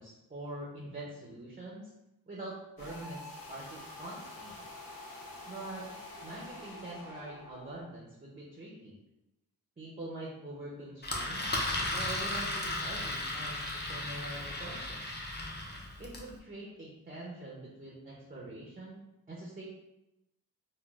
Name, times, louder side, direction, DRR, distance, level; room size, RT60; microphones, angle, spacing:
voice 1, 0.0-1.9 2.3-4.6 5.5-9.0 9.8-11.5 11.9-15.0 16.0-19.0 19.3-19.6, right 1 dB, 25° right, -4 dB, 0.5 m, -44 dB
sound 1, 2.8-7.8, left 2 dB, 60° left, 0.7 m, -47 dB
Engine, 11.0-16.3, left 2 dB, 30° left, 0.5 m, -35 dB
3.7 x 2.1 x 2.3 m, 0.93 s
wide cardioid pair, 95°, 38 cm